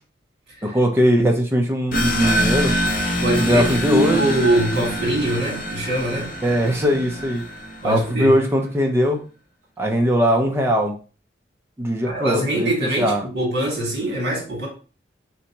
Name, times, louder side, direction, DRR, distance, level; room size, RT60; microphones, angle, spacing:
voice 1, 0.6-2.7 3.4-4.3 4.7-4.8 6.4-7.4 7.8-9.2 9.8-11.0 11.8-12.7 13.0-13.3, equal, 15° right, 0.5 m, -20 dB
sound 1, 1.9-8.2, equal, 50° left, 0.7 m, -25 dB
voice 2, 3.2-6.3 7.8-8.4 12.0-14.7, right 1 dB, 60° right, 1.6 m, -23 dB
3.3 x 2.9 x 2.9 m
head